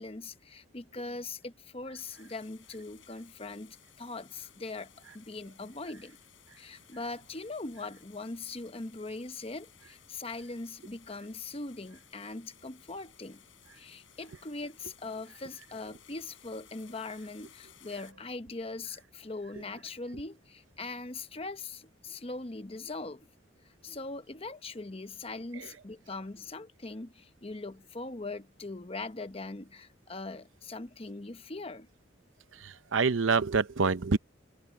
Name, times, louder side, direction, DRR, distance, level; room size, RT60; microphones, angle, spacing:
voice 1, 0.0-6.2 6.6-13.4 13.7-23.3 23.8-31.9, left 3 dB, 30° left, 0.9 m, -41 dB
sound 1, 2.0-18.1, left 11 dB, 85° left, 7.9 m, -59 dB
voice 2, 32.5-34.2, right 4 dB, 85° right, 0.7 m, -27 dB
head